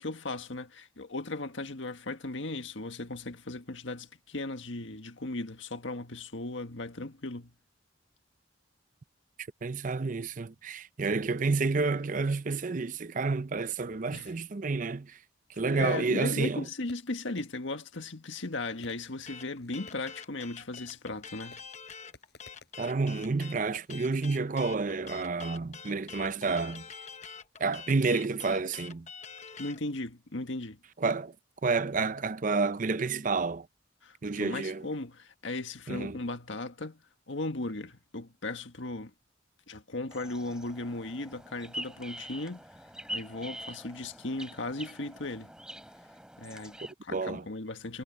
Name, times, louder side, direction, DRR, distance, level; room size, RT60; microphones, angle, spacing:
voice 1, 0.0-7.5 14.1-14.3 15.7-21.6 29.6-30.8 34.0-37.0 37.3-39.1 39.7-42.6 43.1-45.5 46.4-48.0, left 2 dB, 75° left, 1.7 m, -37 dB
voice 2, 9.6-15.2 15.6-16.7 22.8-26.9 27.6-29.1 31.0-31.3 31.6-33.7 34.2-34.9 35.9-36.2 47.1-47.4, right 4 dB, 40° right, 0.6 m, -30 dB
Fireworks, 16.9-17.8 18.8-20.2 20.8-21.2 21.5-22.9 23.7-24.2, left 2 dB, 55° left, 6.6 m, -57 dB
sound 1, 19.3-29.8, left 6 dB, 35° left, 0.9 m, -46 dB
sound 2, 40.1-46.9, right 1 dB, 5° right, 3.1 m, -44 dB
head